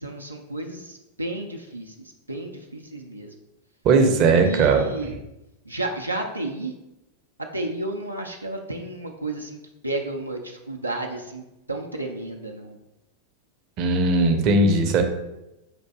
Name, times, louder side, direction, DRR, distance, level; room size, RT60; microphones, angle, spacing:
voice 1, 0.0-1.9 2.3-3.3 4.3-5.2 5.7-6.7 7.5-9.6 9.8-11.4 11.7-12.8, right 2 dB, 85° right, 1 dB, 0.4 m, -32 dB
voice 2, 3.8-4.8 13.8-15.0, right 3 dB, 40° right, 4 dB, 0.6 m, -18 dB
5.8 x 2.6 x 3.5 m, 0.93 s
figure-of-eight pair, 90°, 0 cm